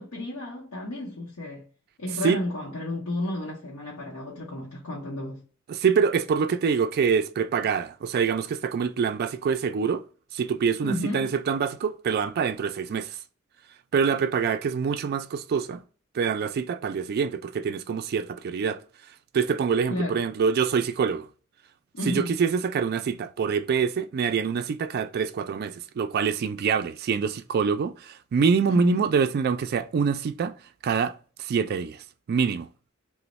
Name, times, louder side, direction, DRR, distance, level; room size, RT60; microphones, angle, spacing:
voice 1, 0.0-1.7 2.0-5.4 10.8-11.3 19.9-20.2 21.9-22.3 28.7-29.0, left 1 dB, 75° left, 0.8 m, -32 dB
voice 2, 5.7-10.0 10.3-13.2 13.9-15.8 16.1-18.8 19.3-21.3 22.1-30.5 30.8-32.7, right 6 dB, 45° right, 0.3 m, -25 dB
3.0 x 2.1 x 4.0 m
head